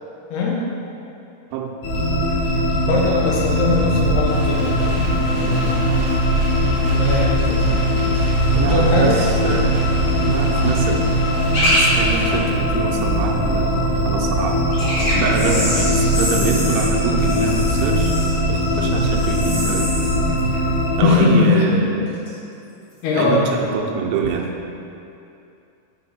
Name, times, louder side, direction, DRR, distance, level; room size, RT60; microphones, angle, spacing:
sound 1, 1.8-21.0, equal, 60° left, 2.5 m, -20 dB
voice 1, 2.8-5.8 6.9-7.7 8.6-9.2 21.0-22.0 23.0-23.5, left 4 dB, 80° left, -2 dB, 2.8 m, -20 dB
sound 2, 4.3-12.4, right 1 dB, 50° right, 1.3 m, -34 dB
voice 2, 8.5-11.2 11.8-14.7 15.1-18.2 18.5-19.9 21.0-22.1 23.1-24.5, right 5 dB, 85° right, 1 dB, 2.8 m, -25 dB
sound 3, 11.5-11.8 12.1-12.2 14.7-21.6 21.8-22.3 23.0-23.2, equal, 45° left, 2.1 m, -26 dB
9.0 x 4.5 x 4.3 m, 2.7 s
omnidirectional pair, 4.8 m